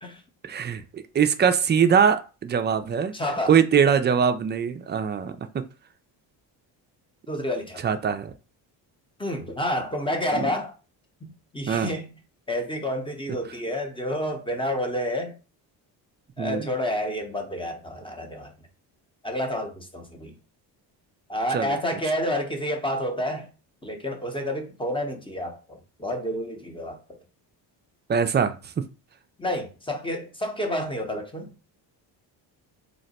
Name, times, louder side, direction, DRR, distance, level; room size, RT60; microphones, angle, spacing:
voice 1, 0.4-3.1 3.5-5.4 7.8-8.3 10.4-10.5 11.7-11.9 16.4-16.7 21.5-21.7 28.1-28.8, right 7 dB, 25° right, 0.3 m, -22 dB
voice 2, 3.1-3.6 7.3-8.0 9.2-10.8 11.2-12.2 12.5-15.3 16.4-18.5 19.2-20.4 21.3-23.5 23.8-27.2 29.4-31.5, equal, 10° left, 0.7 m, -29 dB
2.9 x 2.1 x 4.0 m
supercardioid pair, 70°, 47 cm